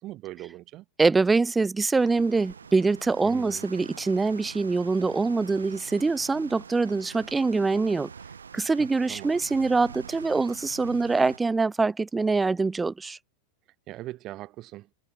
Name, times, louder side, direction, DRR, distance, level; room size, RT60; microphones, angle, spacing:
voice 1, 0.0-0.8 3.2-3.6 8.8-9.3 13.9-14.9, right 16 dB, 35° right, 1.1 m, -40 dB
voice 2, 1.0-8.1 8.5-13.2, right 3 dB, 10° right, 0.6 m, -24 dB
sound 1, 2.0-11.4, right 6 dB, 70° right, 0.9 m, -45 dB
figure-of-eight pair, 90°, 0 cm